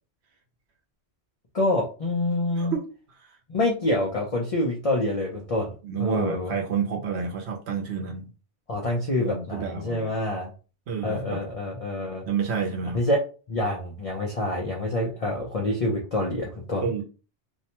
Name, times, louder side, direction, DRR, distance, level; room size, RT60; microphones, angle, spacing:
voice 1, 1.5-2.7 3.5-5.7 6.0-6.6 8.7-10.5 11.0-12.2 12.9-13.2 13.5-16.8, left 1 dB, 45° left, -2 dB, 0.5 m, -26 dB
voice 2, 5.8-8.3 9.2-10.1 10.9-11.4 12.3-13.0 16.8-17.0, right 6 dB, 75° right, 2 dB, 0.9 m, -29 dB
2.6 x 2.1 x 2.8 m, 0.35 s
omnidirectional pair, 1.1 m